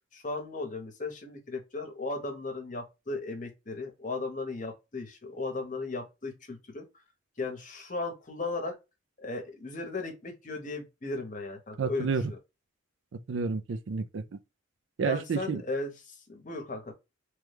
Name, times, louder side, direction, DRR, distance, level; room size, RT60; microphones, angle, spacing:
voice 1, 0.1-6.8 7.4-8.7 9.2-12.4 15.0-16.9, left 3 dB, 40° left, 0.9 m, -36 dB
voice 2, 11.8-12.3 13.1-14.2 15.0-15.6, right 5 dB, 75° right, 0.4 m, -30 dB
3.1 x 2.2 x 3.3 m
head